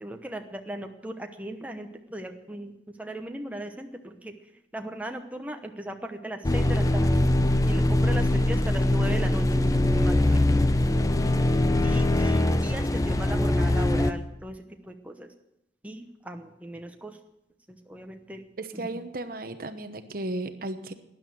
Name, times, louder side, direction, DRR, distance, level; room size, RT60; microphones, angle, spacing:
voice 1, 0.0-2.7 3.0-4.3 4.7-7.1 7.6-9.4 9.7-10.5 11.8-15.3 15.8-17.2 17.7-18.4 18.7-19.0, right 1 dB, 10° right, 4 dB, 1.0 m, -38 dB
sound 1, 6.4-14.1, left 1 dB, 20° left, 0.6 m, -22 dB
voice 2, 18.6-20.9, right 2 dB, 50° right, 10 dB, 1.0 m, -34 dB
12.5 x 10.5 x 9.3 m, 0.85 s
head